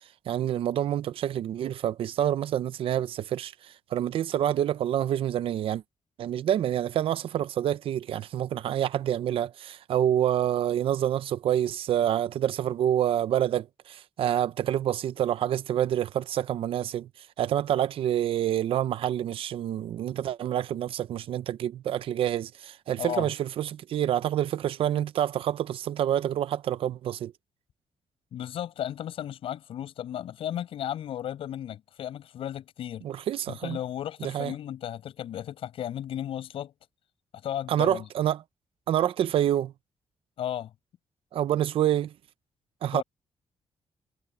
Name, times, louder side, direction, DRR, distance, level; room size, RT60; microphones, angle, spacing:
voice 1, 0.3-5.8 6.2-27.3 33.0-33.8 34.2-34.5 37.7-38.4 38.9-39.7 41.3-42.1 42.8-43.0, right 11 dB, 80° right, 0.7 m, -27 dB
voice 2, 23.0-23.3 28.3-33.1 33.5-36.7 37.4-38.1 40.4-40.7 42.9-43.0, left 11 dB, 90° left, 6.8 m, -34 dB
wide cardioid pair, 140°, 9 cm